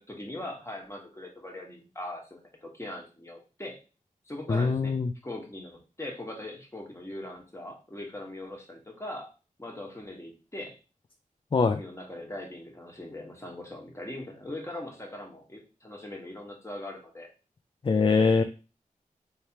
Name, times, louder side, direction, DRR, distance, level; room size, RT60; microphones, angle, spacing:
voice 1, 0.0-3.8 4.3-5.0 5.2-9.3 9.6-10.8 11.7-17.3, left 1 dB, 20° left, 0 dB, 1.4 m, -40 dB
voice 2, 4.5-5.1 11.5-11.8 17.8-18.4, left 4 dB, 40° left, 8 dB, 0.4 m, -23 dB
3.3 x 2.8 x 4.5 m, 0.34 s
wide cardioid pair, 55°, 14 cm